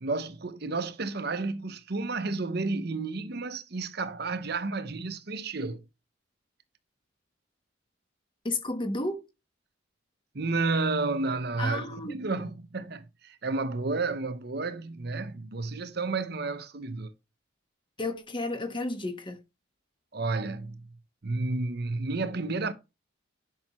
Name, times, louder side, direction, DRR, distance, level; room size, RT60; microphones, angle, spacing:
voice 1, 0.0-5.8 10.3-17.1 20.1-20.9 21.2-22.7, right 3 dB, 55° right, 0.8 m, -31 dB
voice 2, 8.4-9.2 11.6-12.2 18.0-19.4, left 2 dB, 25° left, 1.2 m, -32 dB
10.5 x 5.6 x 3.0 m
head